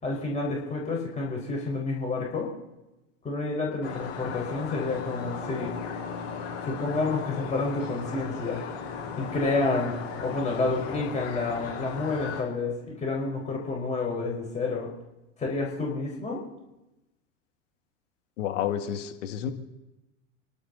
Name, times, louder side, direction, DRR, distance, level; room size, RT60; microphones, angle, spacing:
voice 1, 0.0-2.5 3.2-5.7 6.6-8.6 9.2-9.9 10.2-14.9 15.4-16.4, left 3 dB, 15° left, -2 dB, 4.7 m, -29 dB
sound 1, 3.8-12.4, left 6 dB, 40° left, 5.2 m, -36 dB
voice 2, 18.4-19.5, left 9 dB, 65° left, 5 dB, 2.1 m, -30 dB
29.5 x 11.5 x 4.0 m, 0.98 s
hypercardioid pair, 90°, 39 cm